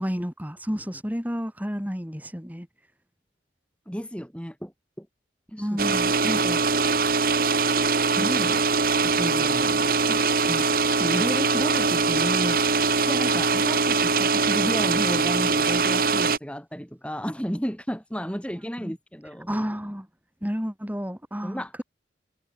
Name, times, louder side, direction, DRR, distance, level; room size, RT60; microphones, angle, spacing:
voice 1, 0.0-2.7 5.6-6.1 18.8-18.9 19.5-20.1 20.4-21.8, equal, 10° right, 5.5 m, -31 dB
voice 2, 3.9-5.1 5.5-5.8 6.2-6.7 8.2-8.7 9.0-12.6 13.1-19.5 21.4-21.8, equal, 5° left, 7.2 m, -32 dB
sound 1, 5.8-16.4, right 4 dB, 50° right, 2.3 m, -22 dB
head